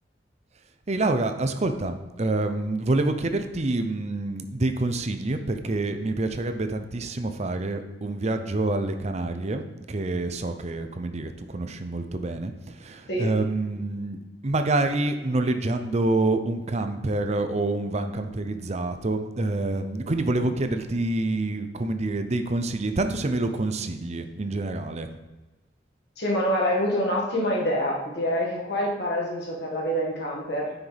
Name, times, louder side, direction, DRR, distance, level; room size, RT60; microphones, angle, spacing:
voice 1, 0.9-25.1, right 2 dB, 40° right, 8 dB, 0.6 m, -27 dB
voice 2, 26.2-30.7, equal, 65° left, -3 dB, 1.9 m, -26 dB
9.4 x 6.0 x 3.4 m, 1.2 s
head